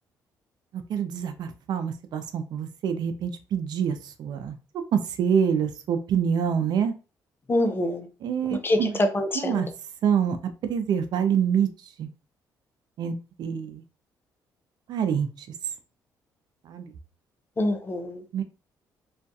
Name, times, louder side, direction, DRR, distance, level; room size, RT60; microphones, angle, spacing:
voice 1, 0.9-4.5 4.9-6.9 8.2-8.9 9.4-9.7 10.0-10.4 10.6-11.7 12.0-12.1 13.0-13.1 13.4-13.8 14.9-15.3 16.7-16.8 18.3-18.4, right 7 dB, 65° right, 9 dB, 0.4 m, -26 dB
voice 2, 7.5-8.1 8.6-9.7 17.6-18.2, left 1 dB, 30° left, 7 dB, 0.5 m, -25 dB
2.3 x 2.2 x 2.6 m, 0.33 s
cardioid pair, 85°, 8 cm